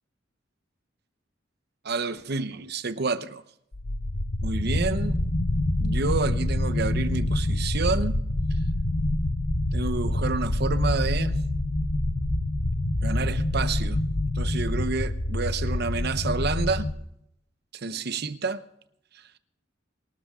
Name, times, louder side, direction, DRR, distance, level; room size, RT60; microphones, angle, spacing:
voice 1, 1.8-3.4 4.4-5.2 5.8-8.2 9.7-11.4 13.0-14.0 14.3-16.9 17.8-18.6, right 4 dB, 60° right, 0.9 m, -29 dB
sound 1, 3.7-16.9, left 1 dB, 55° left, 1.1 m, -26 dB
24.0 x 13.0 x 3.7 m
head